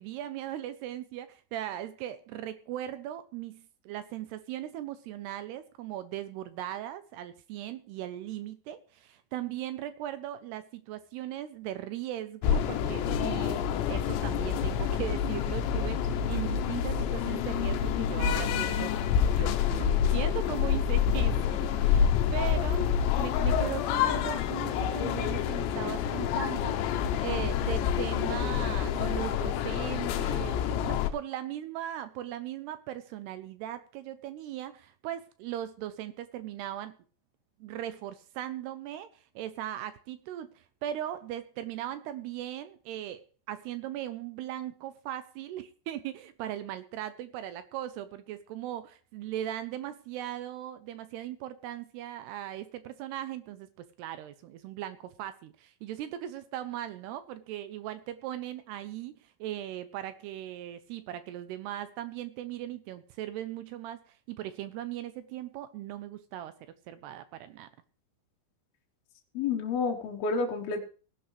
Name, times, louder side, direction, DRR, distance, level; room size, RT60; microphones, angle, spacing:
voice 1, 0.0-18.9 19.4-22.8 23.1-37.0 37.6-43.2 43.5-53.7 54.0-66.5 66.9-67.7, right 12 dB, 80° right, 12 dB, 2.6 m, -38 dB
sound 1, 12.4-31.1, left 8 dB, 80° left, 3.2 m, -28 dB
voice 2, 69.3-70.8, left 4 dB, 65° left, 0 dB, 2.9 m, -29 dB
18.0 x 11.5 x 3.3 m, 0.38 s
omnidirectional pair, 5.1 m